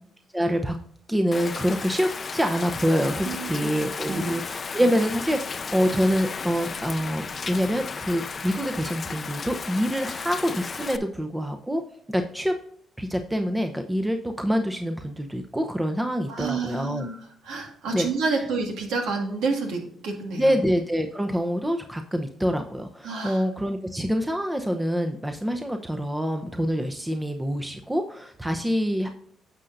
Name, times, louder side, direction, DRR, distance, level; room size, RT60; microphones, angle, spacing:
voice 1, 0.3-0.8 1.1-11.8 12.1-12.5 13.0-17.1 17.9-18.1 20.4-29.1, equal, 10° right, 5 dB, 0.7 m, -26 dB
Rain, 1.3-11.0, left 5 dB, 40° left, 0.5 m, -34 dB
voice 2, 3.2-3.7 4.1-4.3 16.2-17.2 17.4-20.5 23.0-23.4, right 4 dB, 85° right, 2 dB, 2.0 m, -29 dB
9.8 x 6.5 x 2.6 m, 0.66 s
cardioid pair, 90°, 0 cm